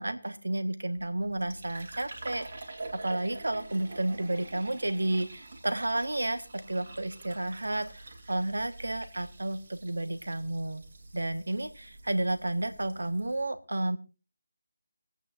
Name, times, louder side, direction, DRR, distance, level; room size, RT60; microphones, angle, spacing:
voice 1, 0.0-10.8 11.1-14.0, right 1 dB, 75° right, 10 dB, 1.4 m, -32 dB
Fill (with liquid), 1.0-13.4, right 2 dB, 50° right, 2.9 m, -47 dB
24.0 x 9.0 x 2.6 m, 0.32 s
figure-of-eight pair, 160°, 0 cm